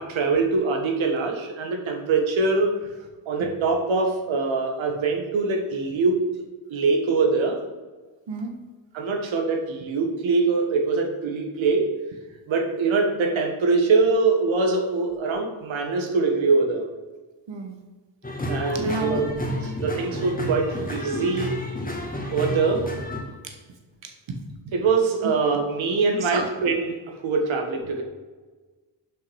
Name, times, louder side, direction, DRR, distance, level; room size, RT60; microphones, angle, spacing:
voice 1, 0.0-2.9 3.3-6.4 6.7-7.6 8.9-11.9 12.5-16.9 18.5-19.3 19.8-21.6 22.3-22.9 24.3-27.0 27.2-28.0, right 4 dB, 85° right, 3 dB, 1.4 m, -23 dB
voice 2, 17.5-17.8 18.7-19.2 23.4-23.5 24.0-24.1 26.1-26.4, right 2 dB, 65° right, 4 dB, 1.5 m, -31 dB
sound 1, 18.2-23.2, left 1 dB, 20° left, 1.7 m, -30 dB
6.8 x 5.7 x 4.7 m, 1.3 s
cardioid pair, 60°, 46 cm